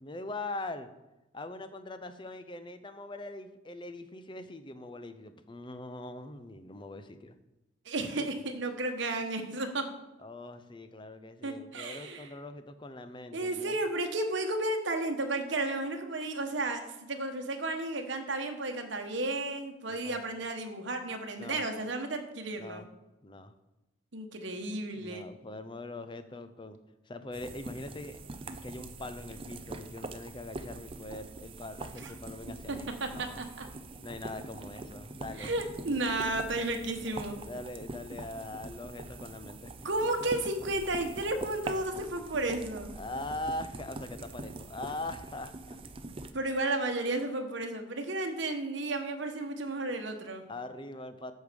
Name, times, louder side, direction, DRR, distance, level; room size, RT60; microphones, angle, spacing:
voice 1, 0.0-0.9 1.3-7.4 10.2-13.8 19.9-20.2 21.4-21.6 22.6-22.9 23.2-23.5 24.9-26.8 27.1-28.2 28.6-33.4 34.0-35.7 37.4-39.7 42.9-45.8 50.5-51.3, left 2 dB, 25° left, 10 dB, 0.6 m, -42 dB
voice 2, 7.8-9.9 11.4-12.3 13.3-22.8 24.1-25.2 32.0-32.1 32.5-33.7 35.4-37.4 39.8-42.9 46.3-50.4, right 2 dB, 65° right, 5 dB, 1.2 m, -33 dB
sound 1, 27.3-46.3, right 2 dB, 25° right, 0.5 m, -43 dB
8.4 x 6.5 x 5.1 m, 0.96 s
head